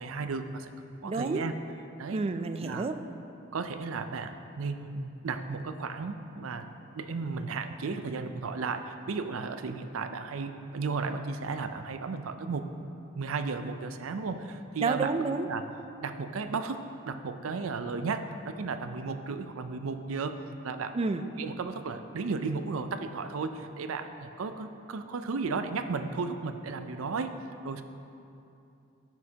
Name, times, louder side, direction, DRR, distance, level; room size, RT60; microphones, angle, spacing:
voice 1, 0.0-1.5 2.0-2.2 2.6-2.9 3.5-6.7 6.9-12.7 13.1-15.1 15.5-15.6 16.0-20.9 21.4-27.3 27.6-27.8, right 4 dB, 85° right, 9 dB, 0.5 m, -34 dB
voice 2, 1.0-1.4 2.1-3.0 14.8-15.5 20.9-21.2, right 3 dB, 30° right, 9 dB, 0.3 m, -29 dB
14.5 x 6.3 x 2.9 m, 2.7 s
head